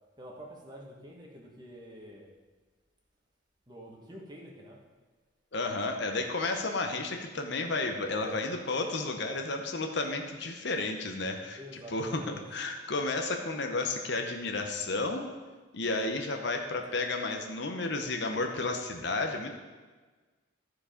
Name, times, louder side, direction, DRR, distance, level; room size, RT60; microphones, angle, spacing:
voice 1, 0.2-2.3 3.7-4.8 8.0-8.5 11.6-12.6, equal, 20° right, -1 dB, 1.4 m, -47 dB
voice 2, 5.5-11.6 11.9-15.3 15.7-19.5, left 3 dB, 55° left, 4 dB, 0.9 m, -32 dB
14.0 x 4.8 x 5.1 m, 1.3 s
head